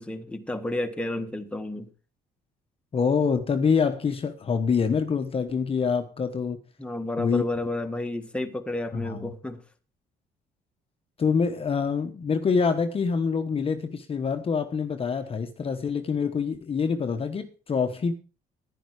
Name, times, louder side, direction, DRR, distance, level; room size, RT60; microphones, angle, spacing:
voice 1, 0.0-1.9 6.8-9.6, left 1 dB, 5° left, 1.5 m, -31 dB
voice 2, 2.9-6.6 7.2-7.4 8.9-9.3 11.2-18.1, left 5 dB, 35° left, 1.2 m, -25 dB
11.0 x 10.5 x 4.8 m
cardioid pair, 110°, 17 cm